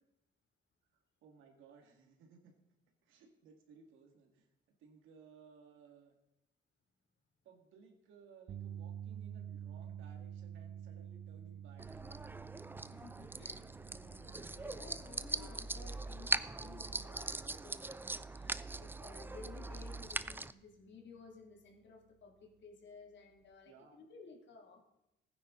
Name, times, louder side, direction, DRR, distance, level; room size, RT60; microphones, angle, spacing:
voice 1, 0.9-2.5 3.0-4.5 4.8-6.2 7.4-12.0 13.2-13.4 23.7-24.0, right 5 dB, 90° right, 4 dB, 2.1 m, -61 dB
sound 1, 8.5-20.7 21.1-21.3 23.5-23.6, right 9 dB, 55° right, 0.7 m, -50 dB
sound 2, 11.8-20.5, right 2 dB, 10° right, 0.4 m, -41 dB
voice 2, 12.9-24.8, left 4 dB, 65° left, 2 dB, 2.5 m, -56 dB
16.0 x 9.5 x 3.8 m, 0.90 s
cardioid pair, 90°, 20 cm